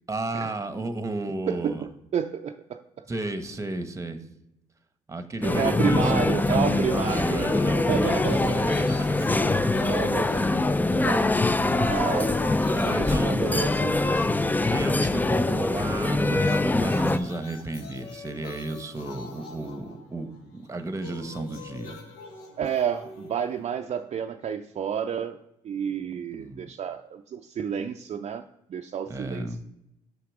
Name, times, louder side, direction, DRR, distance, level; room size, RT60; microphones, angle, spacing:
voice 1, 0.1-1.8 3.1-4.2 5.1-9.8 11.0-11.4 12.7-13.4 14.7-22.0 26.3-26.7 29.1-29.6, right 2 dB, 20° right, 10 dB, 1.0 m, -33 dB
voice 2, 1.5-3.0 5.4-8.7 9.8-11.3 11.7-12.3 12.9-14.3 22.6-25.4 25.6-28.4 28.7-29.6, right 8 dB, 45° right, 5 dB, 0.5 m, -31 dB
sound 1, 5.4-17.2, left 2 dB, 10° left, 0.4 m, -24 dB
sound 2, 7.3-11.3 11.6-15.3 16.3-24.3, left 4 dB, 80° left, 1.1 m, -45 dB
5.9 x 5.8 x 4.8 m, 0.85 s
supercardioid pair, 60°, 15 cm